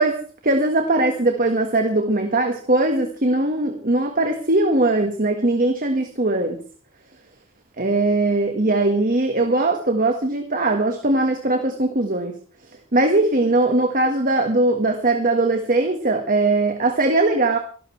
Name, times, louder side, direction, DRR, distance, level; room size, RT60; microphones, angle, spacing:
voice 1, 0.0-6.6 7.8-12.4 12.9-17.6, right 2 dB, 40° right, 5 dB, 1.6 m, -20 dB
25.0 x 12.5 x 3.3 m, 0.40 s
head